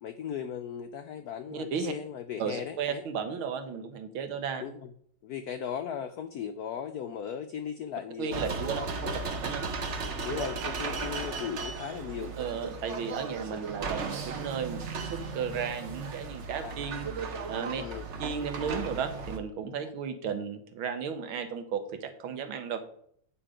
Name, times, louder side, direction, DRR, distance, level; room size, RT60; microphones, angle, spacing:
voice 1, 0.0-3.0 4.6-4.9 5.2-9.3 10.2-12.3 13.9-14.0 16.6-16.9 17.7-18.1 19.8-19.9, left 8 dB, 85° left, 9 dB, 0.8 m, -38 dB
voice 2, 1.5-1.9 2.4-4.7 8.2-9.1 9.4-9.6 12.4-17.8 18.2-22.8, right 6 dB, 80° right, 8 dB, 1.8 m, -34 dB
sound 1, 8.3-19.4, right 4 dB, 50° right, 0.9 m, -36 dB
8.7 x 5.2 x 4.9 m, 0.65 s
omnidirectional pair, 2.3 m